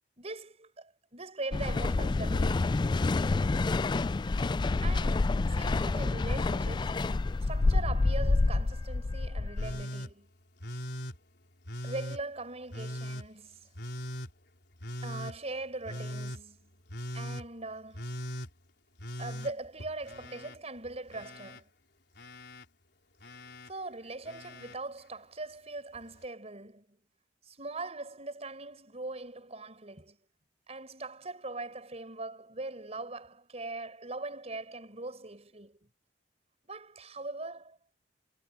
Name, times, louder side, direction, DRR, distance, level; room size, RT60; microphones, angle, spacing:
voice 1, 0.2-2.8 4.8-10.3 11.8-13.7 15.0-16.7 17.1-18.2 19.2-21.7 23.7-27.0 27.5-30.2 30.7-35.8 36.6-37.8, right 2 dB, 35° right, 5.8 m, -41 dB
sound 1, 1.5-9.8, left 3 dB, 25° left, 0.3 m, -28 dB
Telephone, 9.6-10.1 10.6-11.2 11.6-12.2 12.7-13.3 13.7-14.3 14.8-15.3 15.8-16.4 16.9-17.4 17.9-18.5 19.0-20.6 20.8-21.6 22.1-22.6 23.2-23.7 24.2-24.7 25.9-26.0, equal, 65° left, 4.4 m, -40 dB
head